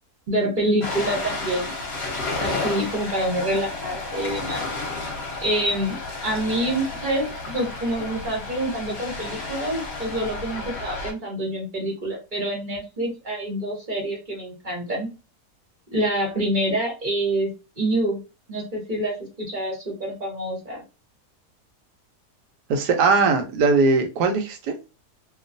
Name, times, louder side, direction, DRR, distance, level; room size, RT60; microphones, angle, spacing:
voice 1, 0.3-1.7 2.4-4.7 5.4-6.0 6.2-15.1 15.9-18.2 18.5-20.8, right 1 dB, 40° right, -1 dB, 0.9 m, -26 dB
Ocean, 0.8-11.1, left 3 dB, 50° left, 0.9 m, -32 dB
voice 2, 22.7-24.9, right 4 dB, 85° right, 5 dB, 1.3 m, -20 dB
2.9 x 2.3 x 2.5 m, 0.30 s
omnidirectional pair, 1.7 m